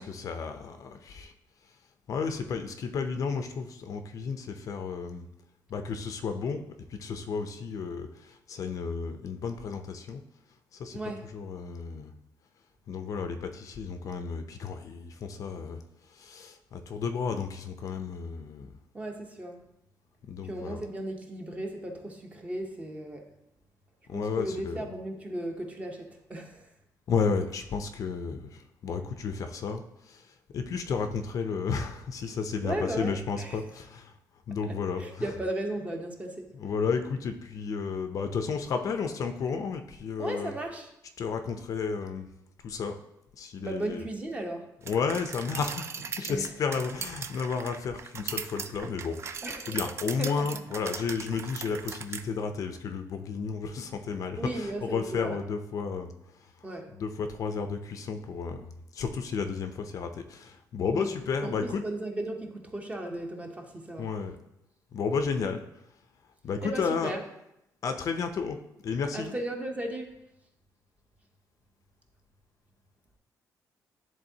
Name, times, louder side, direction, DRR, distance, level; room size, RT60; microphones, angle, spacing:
voice 1, 0.0-1.3 2.1-5.3 5.7-6.6 6.9-10.2 10.7-12.1 12.9-15.8 16.1-18.7 20.3-20.8 24.1-24.9 27.1-34.1 34.5-35.3 36.5-40.5 41.2-42.3 42.6-43.0 43.4-44.1 44.9-49.2 49.7-56.1 56.4-56.5 56.9-61.8 64.0-64.4 64.9-65.6 66.4-67.1 67.8-69.4, left 5 dB, 50° left, 7 dB, 0.5 m, -32 dB
voice 2, 10.9-11.3 18.9-19.6 20.4-23.3 24.1-26.6 32.6-33.6 35.0-36.5 40.2-40.9 43.6-44.7 46.3-46.5 49.4-49.9 50.2-50.5 54.4-55.4 56.6-56.9 60.9-61.1 61.4-64.1 66.6-67.2 69.1-70.1, right 1 dB, 20° right, 3 dB, 0.8 m, -35 dB
sound 1, 44.9-52.2, right 6 dB, 40° right, 0.3 m, -39 dB
10.5 x 3.7 x 2.7 m, 0.83 s
cardioid pair, 140°, 7 cm